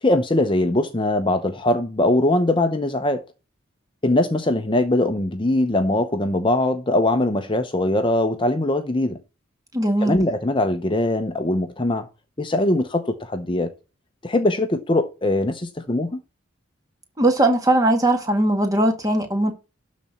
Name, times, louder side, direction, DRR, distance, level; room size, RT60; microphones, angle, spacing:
voice 1, 0.0-3.2 4.0-9.2 10.0-12.1 12.4-13.7 14.2-16.2, left 1 dB, 25° left, 0.7 m, -21 dB
voice 2, 9.7-10.2 17.2-19.5, right 1 dB, 15° right, 1.9 m, -19 dB
12.5 x 4.2 x 7.1 m
head